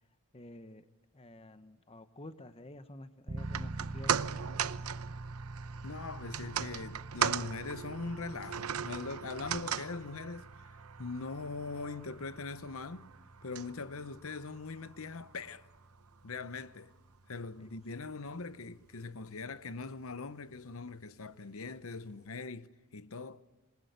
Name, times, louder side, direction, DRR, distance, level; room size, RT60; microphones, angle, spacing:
voice 1, 0.3-0.9 1.1-4.4 17.6-17.7, left 1 dB, 25° left, 1.0 m, -50 dB
sound 1, 3.3-20.0, right 2 dB, 35° right, 0.9 m, -47 dB
sound 2, 3.4-15.8 16.1-16.2, right 8 dB, 85° right, 0.8 m, -39 dB
voice 2, 5.8-10.5 11.0-13.1 13.4-15.7 16.2-16.9 17.3-23.4, left 4 dB, 70° left, 0.9 m, -41 dB
27.0 x 21.5 x 9.4 m
head